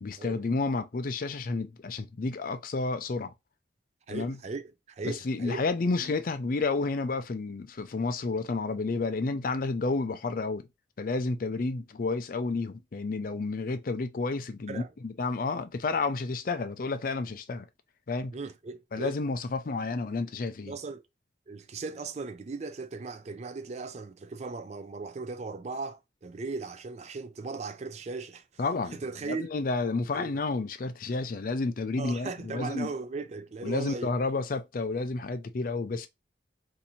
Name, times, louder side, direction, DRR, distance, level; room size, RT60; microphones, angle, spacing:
voice 1, 0.0-3.3 4.1-4.4 5.0-10.7 11.0-17.6 18.1-18.3 18.9-20.7 28.6-29.0 29.3-32.9 33.6-36.1, left 3 dB, 50° left, 0.4 m, -30 dB
voice 2, 4.1-5.7 14.7-14.9 18.3-19.2 20.7-21.0 21.5-28.4 28.9-29.5 30.1-30.3 32.0-34.1, right 4 dB, 35° right, 0.4 m, -37 dB
2.7 x 2.7 x 4.2 m
head